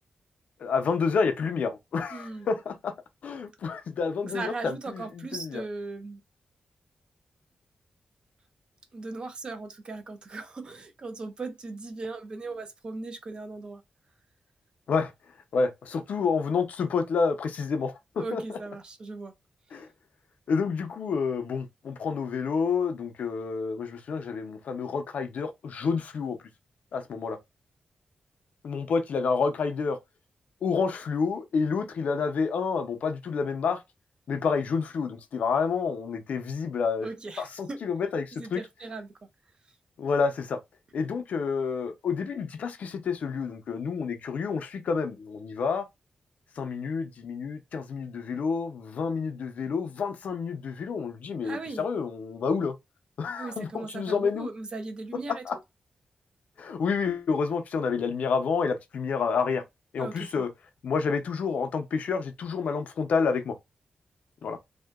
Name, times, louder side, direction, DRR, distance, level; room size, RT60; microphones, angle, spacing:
voice 1, 0.6-2.9 3.2-5.6 14.9-15.1 15.5-18.4 19.7-19.9 20.5-26.4 26.9-27.4 28.6-30.0 30.6-33.8 34.3-37.1 37.4-38.6 40.0-40.6 40.9-45.9 46.6-52.8 53.2-54.5 55.3-55.6 56.6-59.6 59.9-60.5 60.8-63.6 64.4-64.6, left 5 dB, 70° left, 0.4 m, -29 dB
voice 2, 2.1-2.5 4.2-6.2 8.9-13.8 18.2-19.3 37.0-37.8 38.3-39.1 51.4-51.9 53.4-55.4 60.0-60.5, right 3 dB, 35° right, 0.4 m, -38 dB
2.6 x 2.1 x 2.3 m
wide cardioid pair, 175°, 3 cm